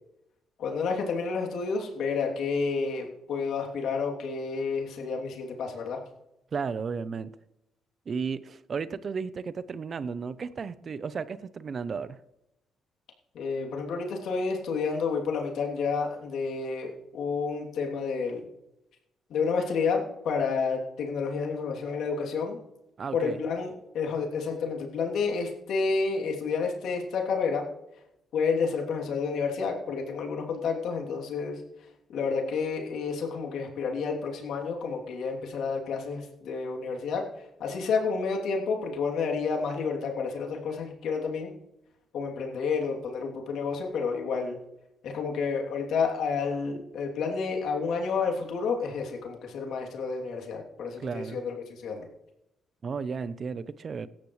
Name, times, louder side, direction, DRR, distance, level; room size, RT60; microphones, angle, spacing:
voice 1, 0.6-6.0 13.3-18.5 19.3-22.6 23.1-27.6 28.3-31.6 32.1-37.2 37.6-41.5 42.1-44.6 45.0-52.1, left 5 dB, 75° left, 0 dB, 3.0 m, -30 dB
voice 2, 6.5-7.3 8.1-12.2 23.0-23.4 51.0-51.4 52.8-54.1, right 5 dB, 45° right, 15 dB, 0.7 m, -34 dB
17.5 x 13.5 x 3.2 m, 0.88 s
cardioid pair, 90°, 0 cm